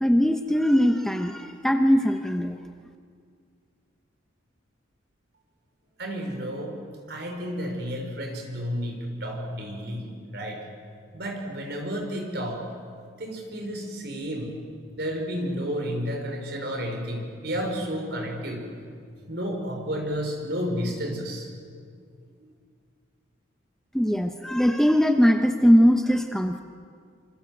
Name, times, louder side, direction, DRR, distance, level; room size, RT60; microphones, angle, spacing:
voice 1, 0.0-2.6 23.9-26.6, equal, ahead, 5 dB, 0.9 m, -21 dB
voice 2, 6.0-6.7 7.1-10.6 11.1-12.7 13.2-14.6 15.0-18.6 19.3-21.5, equal, 55° right, 2 dB, 5.2 m, -31 dB
26.5 x 25.0 x 7.9 m, 2.2 s
head